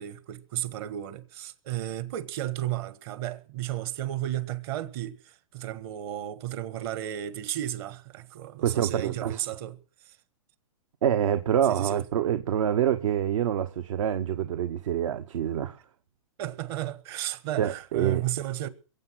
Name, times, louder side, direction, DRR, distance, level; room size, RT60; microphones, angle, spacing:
voice 1, 0.0-9.8 11.7-12.0 16.4-18.7, right 13 dB, 45° right, 1.6 m, -33 dB
voice 2, 8.6-9.4 11.0-15.8 17.6-18.2, right 10 dB, 65° right, 1.1 m, -26 dB
22.5 x 7.9 x 6.4 m
hypercardioid pair, 135°, 18 cm